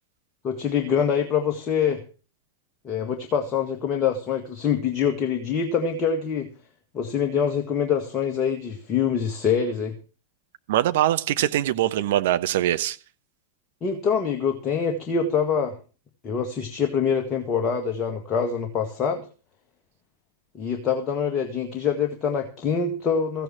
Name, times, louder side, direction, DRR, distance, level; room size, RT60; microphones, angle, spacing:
voice 1, 0.4-2.0 2.8-6.5 6.9-9.9 13.8-15.7 16.2-19.3 20.5-23.4, left 7 dB, 30° left, 1.9 m, -25 dB
voice 2, 10.7-13.0, right 13 dB, 55° right, 1.0 m, -22 dB
15.0 x 9.1 x 6.2 m
figure-of-eight pair, 90°, 0 cm